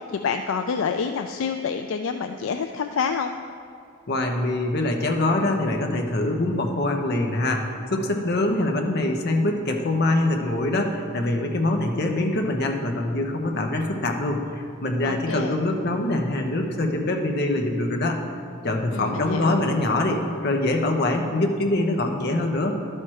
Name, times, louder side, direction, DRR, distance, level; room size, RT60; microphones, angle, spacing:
voice 1, 0.1-3.3 15.0-15.5 18.9-19.6, left 6 dB, 70° left, 6 dB, 0.4 m, -27 dB
voice 2, 4.1-7.6 7.9-18.2 18.6-22.8, left 2 dB, 50° left, 3 dB, 0.9 m, -24 dB
11.5 x 4.4 x 6.3 m, 2.4 s
head